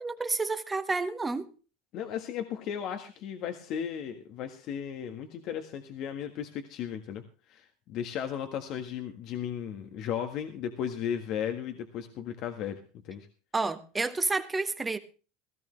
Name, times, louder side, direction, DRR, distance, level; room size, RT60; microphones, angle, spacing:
voice 1, 0.0-1.5 13.5-15.0, right 3 dB, 15° right, 1.4 m, -30 dB
voice 2, 1.9-13.3, left 9 dB, 55° left, 1.6 m, -35 dB
17.0 x 14.0 x 3.3 m
hypercardioid pair, 95°, 0 cm